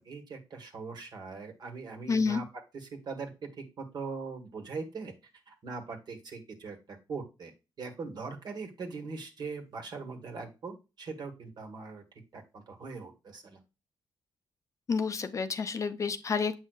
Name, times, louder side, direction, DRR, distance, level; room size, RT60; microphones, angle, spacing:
voice 1, 0.0-2.4 2.7-3.3 3.8-5.1 5.5-7.5 7.8-12.0 12.3-13.6, right 4 dB, 55° right, 4 dB, 1.5 m, -41 dB
voice 2, 2.1-2.4 14.9-16.6, left 5 dB, 40° left, 10 dB, 0.6 m, -29 dB
7.9 x 5.5 x 2.4 m, 0.29 s
cardioid pair, 125°, 9 cm